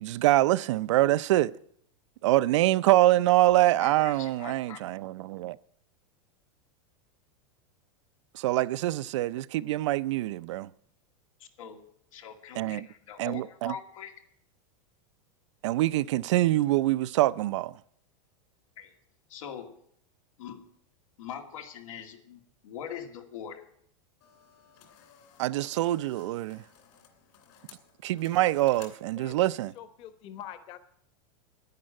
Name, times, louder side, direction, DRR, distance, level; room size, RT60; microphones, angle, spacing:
voice 1, 0.0-1.5 2.2-5.6 8.3-10.7 12.6-12.9 13.2-13.7 15.6-17.8 25.4-26.6 28.0-29.7, right 16 dB, 65° right, 0.5 m, -25 dB
voice 2, 3.8-4.8 11.4-11.8 12.1-14.1 18.8-18.9 19.3-19.8 20.4-20.7 21.2-23.6, left 8 dB, 90° left, 2.2 m, -42 dB
sound 1, 24.2-29.7, left 8 dB, 55° left, 2.8 m, -56 dB
voice 3, 29.2-30.8, left 10 dB, 30° left, 1.1 m, -45 dB
10.5 x 10.5 x 8.8 m
supercardioid pair, 170°, 17 cm